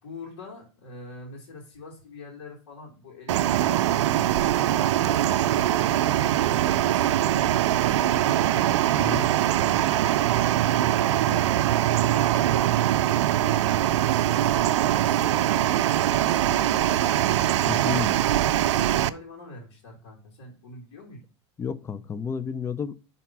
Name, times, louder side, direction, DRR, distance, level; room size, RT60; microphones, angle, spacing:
voice 1, 0.0-4.1 4.4-8.4 8.7-10.1 10.7-12.7 13.2-14.7 15.0-17.1 17.6-21.2, left 2 dB, 70° left, 2.8 m, -44 dB
sound 1, 3.3-19.1, right 12 dB, 80° right, 0.4 m, -22 dB
voice 2, 9.0-9.3 17.7-18.1 21.6-22.9, left 6 dB, 20° left, 0.4 m, -31 dB
5.7 x 4.1 x 6.0 m
hypercardioid pair, 105°, 15 cm